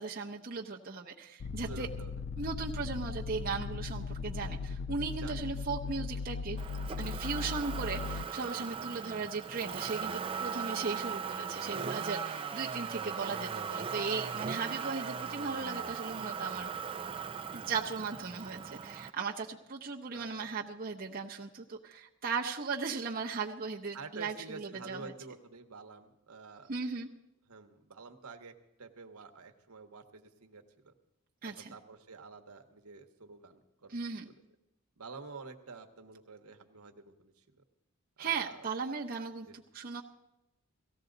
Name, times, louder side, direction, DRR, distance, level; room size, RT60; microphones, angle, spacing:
voice 1, 0.0-1.9 2.4-6.6 7.0-12.2 12.5-16.7 17.5-25.1 26.7-27.1 31.4-31.7 33.9-34.3 38.2-40.0, right 5 dB, 40° right, -1 dB, 0.9 m, -37 dB
sound 1, 1.4-8.3, left 4 dB, 55° left, 0.4 m, -38 dB
voice 2, 1.6-2.1 5.2-5.5 11.7-12.3 12.6-12.7 14.6-14.8 20.1-20.5 23.9-26.7 27.5-30.9 31.4-34.3 35.0-37.6 38.2-38.7 39.5-39.6, right 4 dB, 80° right, 5 dB, 1.1 m, -49 dB
Motor vehicle (road), 6.6-19.1, right 6 dB, 25° right, 0.4 m, -39 dB
17.5 x 15.0 x 3.9 m, 0.92 s
head